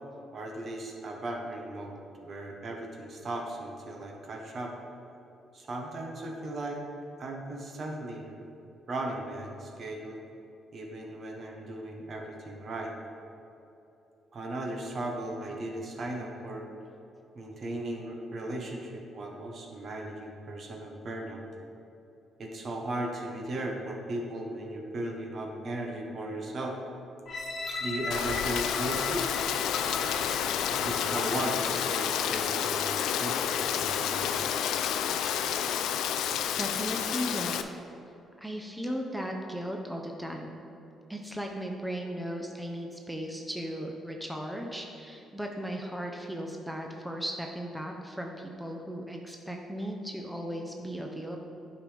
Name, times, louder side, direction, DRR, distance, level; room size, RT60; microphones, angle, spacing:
voice 1, 0.3-4.7 5.5-6.8 7.2-8.4 8.9-10.2 10.7-12.9 14.3-16.7 17.3-21.4 22.4-26.8 27.8-29.3 30.8-34.4, right 1 dB, 50° right, 1 dB, 1.1 m, -37 dB
sound 1, 27.3-32.2 32.8-32.9, left 2 dB, 35° left, 1.3 m, -38 dB
Rain, 28.1-37.6, left 9 dB, 85° left, 0.3 m, -30 dB
voice 2, 36.6-37.8 38.4-40.6 41.1-51.4, equal, 5° right, 1 dB, 0.7 m, -36 dB
9.5 x 5.3 x 3.4 m, 2.8 s
cardioid pair, 90°, 0 cm